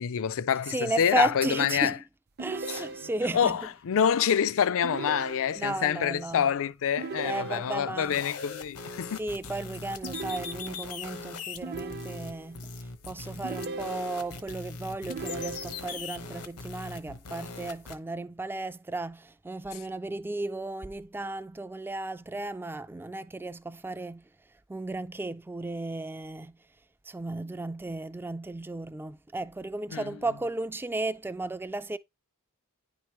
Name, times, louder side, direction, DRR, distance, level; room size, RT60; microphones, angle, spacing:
voice 1, 0.0-1.9 2.7-2.8 3.3-9.2 29.9-30.0, left 8 dB, 65° left, 0.4 m, -27 dB
voice 2, 0.7-2.0 2.4-3.6 5.6-6.5 7.2-8.2 9.2-12.8 13.0-24.2 24.7-26.5 27.1-32.0, right 2 dB, 10° right, 0.3 m, -34 dB
sound 1, 2.4-3.4 4.8-5.9 7.0-8.0 10.0-11.0 11.6-12.6 13.4-14.5 15.1-16.1, right 3 dB, 45° right, 0.6 m, -39 dB
sound 2, 8.0-17.9, left 4 dB, 80° left, 1.1 m, -41 dB
10.0 x 4.8 x 3.0 m
head